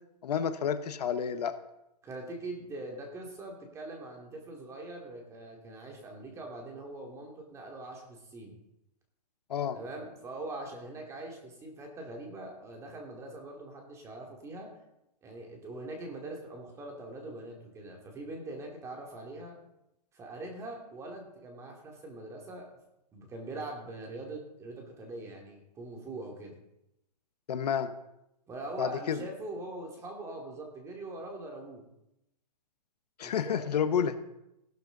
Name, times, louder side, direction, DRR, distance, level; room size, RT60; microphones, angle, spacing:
voice 1, 0.2-1.5 9.5-9.8 27.5-27.9 28.8-29.2 33.2-34.2, left 8 dB, 75° left, 10 dB, 1.3 m, -30 dB
voice 2, 2.0-8.6 9.7-14.7 15.2-19.6 20.1-22.7 23.1-26.5 28.5-31.8 33.2-33.7, right 2 dB, 15° right, 2 dB, 2.6 m, -42 dB
15.5 x 12.5 x 4.0 m, 0.87 s
hypercardioid pair, 155°, 21 cm